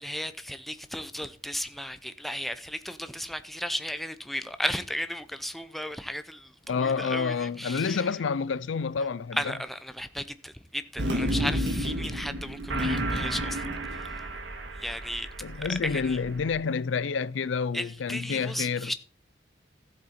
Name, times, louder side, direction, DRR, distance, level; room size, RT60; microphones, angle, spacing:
voice 1, 0.0-8.1 9.3-13.6 13.9-14.1 14.8-15.3 15.6-16.2 17.7-18.9, equal, ahead, 0.6 m, -35 dB
voice 2, 6.7-9.5 15.4-18.9, left 5 dB, 90° left, 0.5 m, -29 dB
sound 1, 11.0-16.5, equal, 80° right, 1.8 m, -31 dB
13.5 x 7.8 x 4.3 m
head